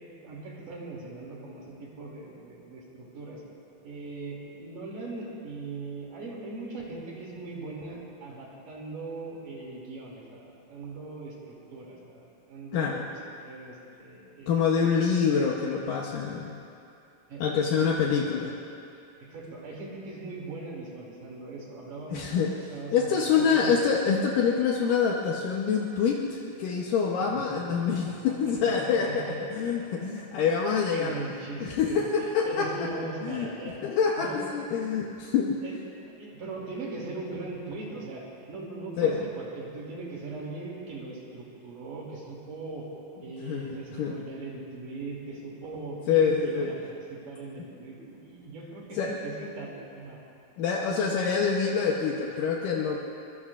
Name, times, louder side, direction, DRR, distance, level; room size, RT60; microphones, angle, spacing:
voice 1, 0.0-3.4 3.8-15.0 17.3-18.1 19.3-23.8 27.2-28.2 28.8-29.4 29.8-29.9 30.7-33.8 34.2-34.4 34.9-35.0 35.6-35.8 36.0-42.9 43.2-50.2, right 3 dB, 65° right, -3 dB, 4.1 m, -40 dB
voice 2, 12.7-13.1 14.5-16.6 17.4-18.5 22.1-22.5 22.9-29.3 29.5-31.2 31.6-32.9 33.2-33.5 33.8-35.5 39.0-39.2 43.4-44.1 46.1-46.7 49.0-49.1 50.6-53.0, left 6 dB, 75° left, -2 dB, 2.4 m, -26 dB
24.0 x 22.5 x 2.5 m, 2.6 s
omnidirectional pair, 4.2 m